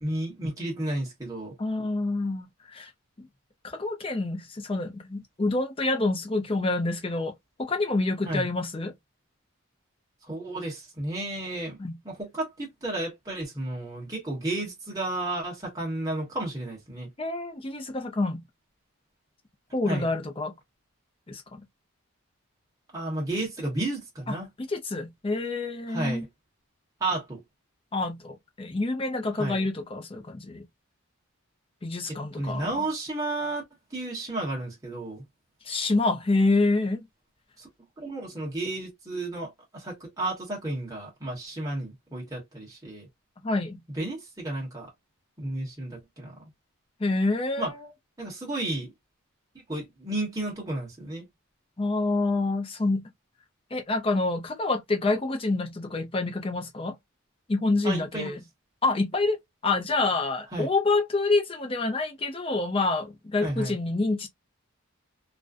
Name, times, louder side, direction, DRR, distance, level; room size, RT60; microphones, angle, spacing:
voice 1, 0.0-1.6 8.2-8.5 10.3-11.8 12.0-17.1 19.9-20.1 22.9-24.5 25.9-26.3 27.0-27.4 29.4-29.7 32.3-33.6 33.9-35.2 37.6-37.7 38.0-43.1 44.0-44.9 45.4-46.3 47.6-47.7 48.2-48.9 49.7-51.3 57.8-58.3 60.5-60.7 63.4-63.8, right 2 dB, 15° right, 0.9 m, -32 dB
voice 2, 1.6-2.9 3.2-3.3 3.6-7.3 7.6-8.9 11.8-12.0 17.2-18.4 19.7-20.5 21.3-21.6 24.3-26.2 27.9-30.6 31.8-32.8 35.6-37.0 43.4-43.8 47.0-47.9 51.8-53.1 53.7-57.0 57.5-58.4 58.8-64.3, left 2 dB, 25° left, 0.5 m, -27 dB
2.5 x 2.1 x 2.4 m
head